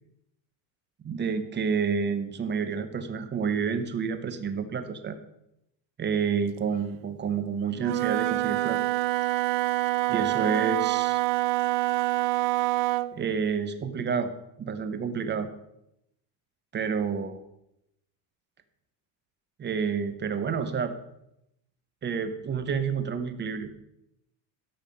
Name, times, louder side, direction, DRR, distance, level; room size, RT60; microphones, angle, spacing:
voice 1, 1.0-5.2 6.0-8.8 10.1-11.2 13.1-14.3 14.6-15.5 16.7-17.4 19.6-20.9 22.0-23.8, right 6 dB, 25° right, 10 dB, 0.9 m, -29 dB
Wind instrument woodwind instrument, 7.7-13.2, right 17 dB, 85° right, 0.6 m, -26 dB
13.0 x 5.6 x 5.3 m, 0.83 s
cardioid pair, 145°, 44 cm